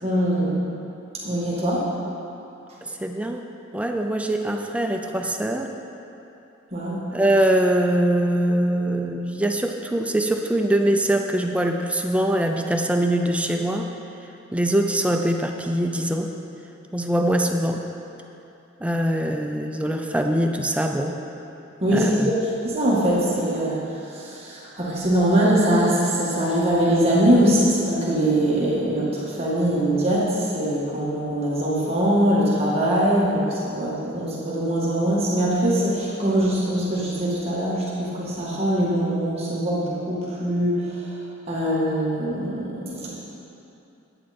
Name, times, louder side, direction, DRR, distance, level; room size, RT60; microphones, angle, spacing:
voice 1, 0.0-0.6 1.2-1.9 6.7-7.1 21.8-22.3 22.6-41.2 41.5-43.1, right 1 dB, 30° right, -7 dB, 1.9 m, -22 dB
voice 2, 2.8-3.4 3.7-5.7 7.1-13.9 14.5-16.3 16.9-17.8 18.8-21.2 21.9-22.3, right 1 dB, 5° right, 3 dB, 0.4 m, -23 dB
10.5 x 8.9 x 4.3 m, 2.8 s
head